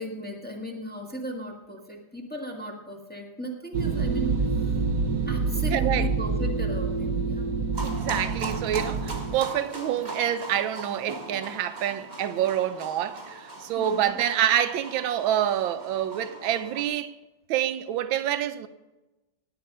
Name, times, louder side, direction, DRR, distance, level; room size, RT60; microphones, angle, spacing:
voice 1, 0.0-4.7 5.2-7.6 13.8-14.1, right 1 dB, 5° left, 1.6 m, -36 dB
sound 1, 3.7-9.3, right 4 dB, 60° right, 1.4 m, -27 dB
voice 2, 5.7-6.1 7.8-17.1 17.5-18.7, right 10 dB, 85° right, 1.5 m, -27 dB
sound 2, 7.7-16.8, right 2 dB, 20° right, 1.9 m, -39 dB
18.0 x 8.6 x 5.4 m
omnidirectional pair, 2.1 m